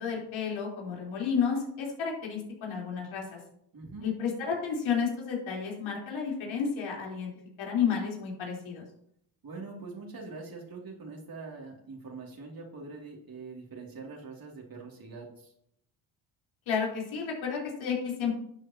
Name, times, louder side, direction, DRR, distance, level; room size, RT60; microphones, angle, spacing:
voice 1, 0.0-3.4 4.0-7.3 7.6-8.8 16.7-18.3, left 6 dB, 65° left, -2 dB, 4.1 m, -31 dB
voice 2, 3.7-4.1 9.4-15.5, right 4 dB, 45° right, -2 dB, 2.8 m, -43 dB
11.5 x 8.0 x 2.9 m, 0.71 s
hypercardioid pair, 60°, 50 cm